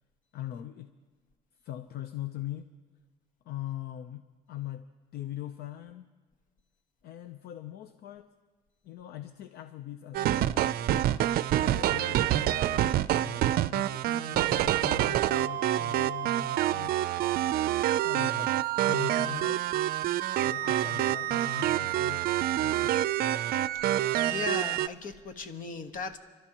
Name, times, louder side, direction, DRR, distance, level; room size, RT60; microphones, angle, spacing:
voice 1, 0.3-0.9 1.6-2.7 3.4-4.9 5.1-6.1 7.0-8.3 8.8-11.1 11.6-17.1 18.0-19.6 20.4-22.3 22.6-23.1, left 13 dB, 70° left, 10 dB, 0.7 m, -41 dB
sound 1, 10.1-24.9, right 13 dB, 65° right, 0.5 m, -27 dB
voice 2, 23.7-26.2, left 4 dB, 55° left, 7 dB, 1.3 m, -37 dB
30.0 x 12.5 x 3.0 m, 1.5 s
cardioid pair, 110°, 17 cm